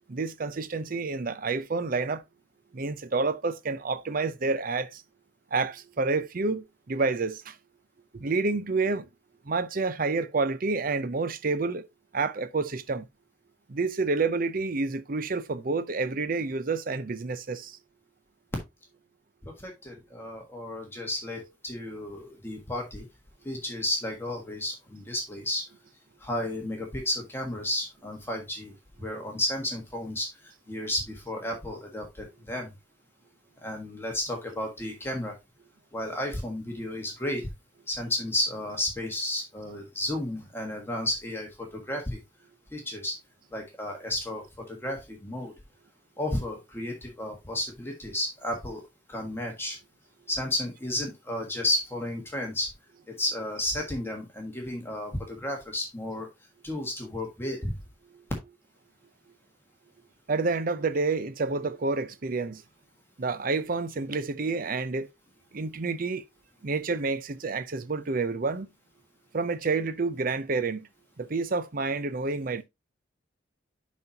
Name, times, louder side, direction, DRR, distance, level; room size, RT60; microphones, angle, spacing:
voice 1, 0.1-2.2 2.7-5.0 5.5-7.6 8.1-9.1 9.5-11.9 12.1-13.1 13.7-17.8 60.3-62.6 63.2-65.1 65.5-66.2 66.6-68.7 69.3-70.9 71.2-72.6, right 3 dB, 45° right, 0.6 m, -29 dB
voice 2, 19.4-23.0 23.4-25.6 26.2-28.7 29.0-30.3 30.7-32.7 33.6-35.3 35.9-37.5 37.9-42.2 42.7-43.1 43.5-45.5 46.2-48.8 49.1-49.8 50.3-52.7 53.1-56.3 56.6-57.8, left 1 dB, 10° left, 1.5 m, -32 dB
10.5 x 4.2 x 2.8 m
head